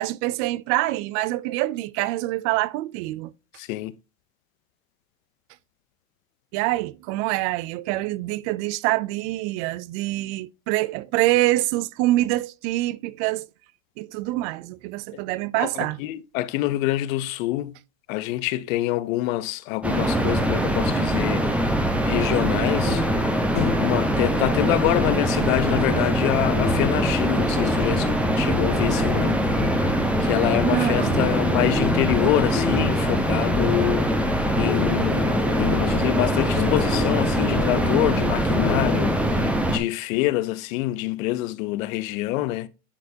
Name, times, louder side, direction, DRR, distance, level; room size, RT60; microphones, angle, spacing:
voice 1, 0.0-3.3 6.5-13.5 14.0-16.0 30.6-31.3, right 17 dB, 55° right, 0.5 m, -25 dB
voice 2, 3.5-3.9 15.6-17.8 18.1-23.2 23.5-34.1 34.6-42.7, left 16 dB, 70° left, 0.7 m, -26 dB
sound 1, 19.8-39.8, right 1 dB, 5° right, 0.8 m, -23 dB
sound 2, 22.9-39.5, left 6 dB, 35° left, 0.8 m, -31 dB
9.9 x 4.3 x 2.7 m
supercardioid pair, 130°, 42 cm